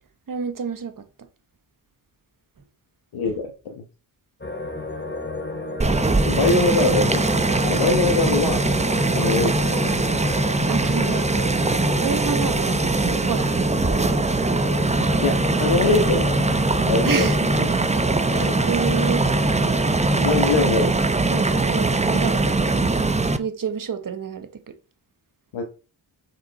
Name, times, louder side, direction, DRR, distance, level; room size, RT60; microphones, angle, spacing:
voice 1, 0.3-1.0 10.7-11.7 12.0-14.2 17.0-17.5 18.3-19.2 21.3-23.0 23.4-24.7, right 6 dB, 40° right, 1.2 m, -29 dB
voice 2, 3.1-3.7 6.2-7.3 7.6-8.6 9.1-9.8 15.2-16.4 16.9-17.4 18.4-18.6 20.2-21.0 25.5-25.6, left 3 dB, 75° left, 1.3 m, -22 dB
sound 1, 4.4-20.2, left 2 dB, 25° left, 2.1 m, -33 dB
sound 2, 5.8-23.4, right 2 dB, 15° right, 0.7 m, -21 dB
5.9 x 4.7 x 4.1 m
cardioid pair, 65°, 48 cm